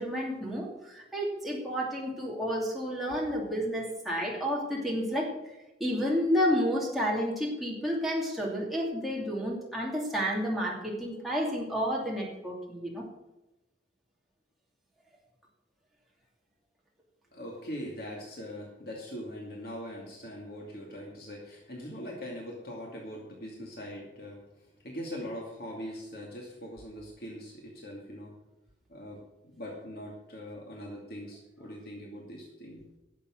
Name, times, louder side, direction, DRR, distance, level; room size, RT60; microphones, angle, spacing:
voice 1, 0.0-5.3 5.8-13.1, equal, ahead, -4 dB, 2.7 m, -30 dB
voice 2, 17.3-28.3 28.9-32.8, equal, 55° left, -1 dB, 2.5 m, -42 dB
11.5 x 7.5 x 7.7 m, 0.98 s
head